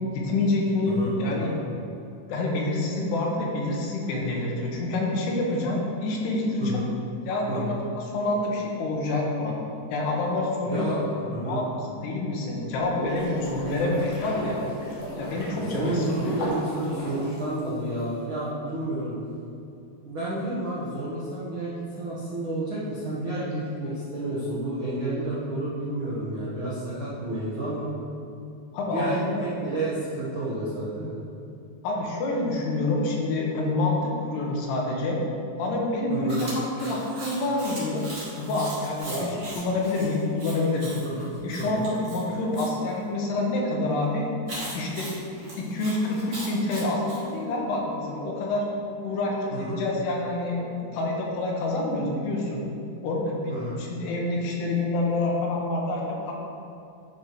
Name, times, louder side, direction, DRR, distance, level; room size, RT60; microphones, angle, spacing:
voice 1, 0.1-1.5 2.3-6.8 7.3-9.6 9.9-11.0 11.4-11.7 11.9-14.6 15.2-16.4 28.7-29.5 31.8-35.2 35.6-38.0 38.4-40.9 41.4-44.3 44.7-45.1 45.6-48.7 49.0-52.6 53.0-56.3, left 2 dB, 80° left, -1 dB, 3.3 m, -27 dB
voice 2, 10.7-11.0 11.3-11.6 15.7-19.1 20.0-27.9 28.9-31.2 36.1-36.4 39.1-39.4 41.0-41.2 41.7-41.8 49.5-49.8 53.5-53.7, right 1 dB, 85° right, -9 dB, 1.1 m, -30 dB
sound 1, 12.6-18.0, equal, 50° left, 2.7 m, -34 dB
Chewing mastication, 36.3-42.7 44.5-47.2, right 1 dB, 35° right, 1.3 m, -39 dB
11.0 x 4.9 x 4.6 m, 2.6 s
omnidirectional pair, 4.7 m